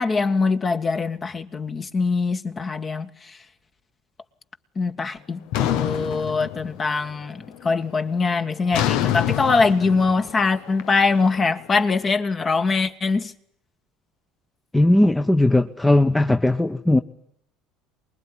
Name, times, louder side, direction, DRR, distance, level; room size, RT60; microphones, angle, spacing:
voice 1, 0.0-3.4 4.8-13.3, left 4 dB, 30° left, 1.8 m, -23 dB
sound 1, 5.5-7.1 7.4-7.8 8.7-11.8, left 12 dB, 65° left, 1.1 m, -26 dB
voice 2, 14.7-17.0, left 1 dB, 10° left, 1.1 m, -18 dB
24.5 x 21.0 x 10.0 m
hypercardioid pair, 70°, 0 cm